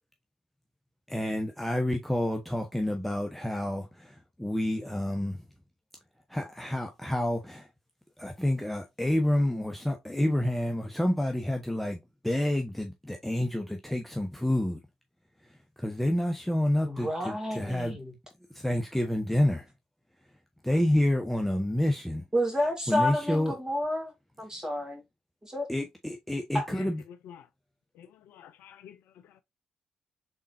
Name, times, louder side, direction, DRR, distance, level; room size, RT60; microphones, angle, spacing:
voice 1, 1.1-5.4 6.3-7.7 8.2-14.8 15.8-18.0 18.5-19.7 20.6-22.2 22.9-23.6 25.7-27.0, left 1 dB, 5° left, 0.9 m, -28 dB
voice 2, 16.8-18.1 22.3-24.1 24.4-25.0 25.4-25.7 26.5-26.7, left 1 dB, 20° right, 2.4 m, -30 dB
voice 3, 28.0-29.0 29.2-29.4, left 9 dB, 70° left, 0.3 m, -50 dB
4.2 x 3.7 x 2.6 m
hypercardioid pair, 40°, 3 cm